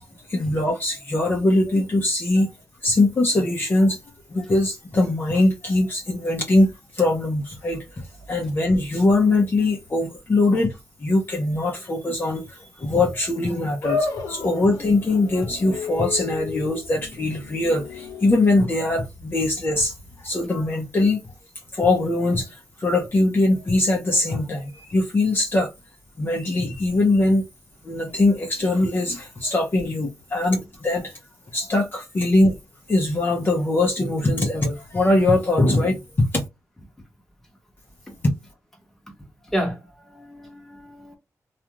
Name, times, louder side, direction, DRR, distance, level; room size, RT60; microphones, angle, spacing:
voice 1, 0.3-2.5 2.8-4.0 4.3-7.8 8.3-21.2 21.7-25.7 26.2-27.5 27.8-31.1 31.5-32.6 32.9-36.4, left 2 dB, 35° left, 0.7 m, -21 dB
sound 1, 13.8-20.3, left 4 dB, 90° left, 0.8 m, -33 dB
voice 2, 39.4-41.2, equal, 5° left, 1.0 m, -31 dB
2.4 x 2.3 x 2.9 m
wide cardioid pair, 140°, 6 cm